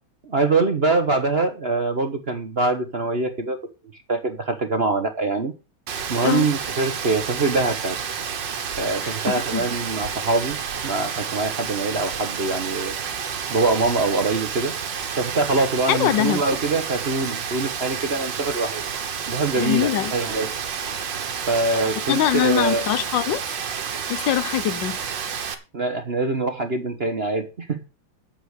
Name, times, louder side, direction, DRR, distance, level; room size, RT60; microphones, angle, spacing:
voice 1, 0.2-3.6 3.9-5.5 6.1-8.0 8.8-10.6 10.8-13.0 13.5-14.7 15.2-18.8 19.3-20.5 21.5-22.9 25.7-27.8, right 3 dB, 40° right, 0.9 m, -24 dB
Rain, 5.9-25.5, right 7 dB, 60° right, 1.9 m, -30 dB
voice 2, 15.9-16.4 19.6-20.1 22.1-23.4 24.1-25.0, left 12 dB, 70° left, 1.3 m, -22 dB
9.9 x 7.2 x 6.4 m
omnidirectional pair, 2.3 m